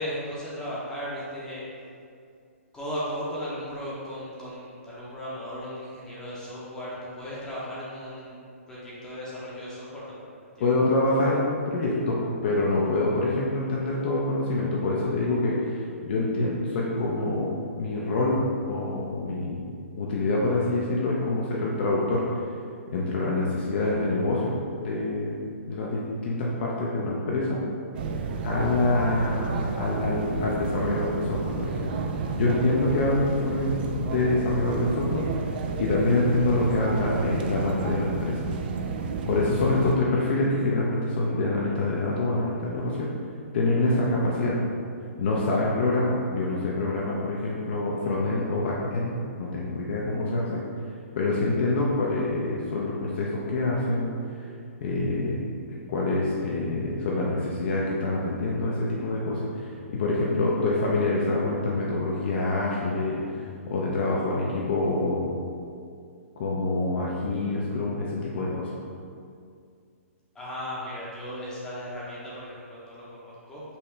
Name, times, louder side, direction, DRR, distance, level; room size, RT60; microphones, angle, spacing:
voice 1, 0.0-1.6 2.7-8.4 8.7-10.7 70.3-73.6, equal, 10° left, -8 dB, 0.8 m, -36 dB
voice 2, 10.6-19.6 20.0-22.3 22.9-25.4 25.7-27.6 28.4-31.9 32.4-35.5 35.8-38.4 39.3-43.1 43.5-44.6 45.2-50.6 51.1-54.1 54.8-55.4 55.7-63.4 63.7-65.3 66.4-68.7, left 2 dB, 45° left, -4 dB, 0.6 m, -26 dB
sound 1, 27.9-40.0, right 4 dB, 40° right, 0.3 m, -31 dB
5.5 x 2.7 x 3.3 m, 2.3 s
hypercardioid pair, 155°, 8 cm